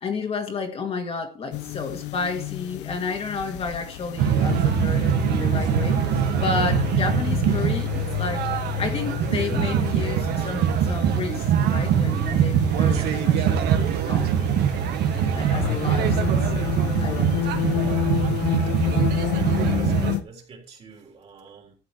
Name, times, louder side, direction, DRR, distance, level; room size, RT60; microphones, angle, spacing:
voice 1, 0.0-6.0 6.4-8.5 8.8-13.7 14.0-14.4 15.1-16.3 17.0-17.4, left 4 dB, 35° left, 1.8 m, -31 dB
sound 1, 1.5-20.2, left 17 dB, 85° left, 0.8 m, -30 dB
sound 2, 4.2-20.2, right 8 dB, 65° right, 1.5 m, -23 dB
voice 2, 12.9-13.2 13.7-13.9 18.8-19.1 19.5-21.8, right 4 dB, 35° right, 3.5 m, -44 dB
13.0 x 7.8 x 4.4 m
cardioid pair, 140°, 18 cm